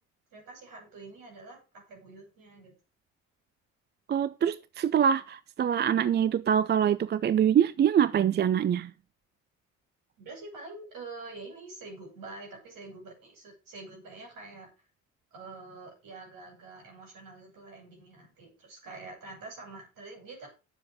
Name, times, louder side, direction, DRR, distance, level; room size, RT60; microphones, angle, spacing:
voice 1, 0.3-2.7 10.2-14.7 15.3-20.5, right 3 dB, 55° right, 7.1 m, -46 dB
voice 2, 4.1-8.9, right 9 dB, 25° right, 0.5 m, -24 dB
11.5 x 7.7 x 5.2 m
figure-of-eight pair, 50°, 40 cm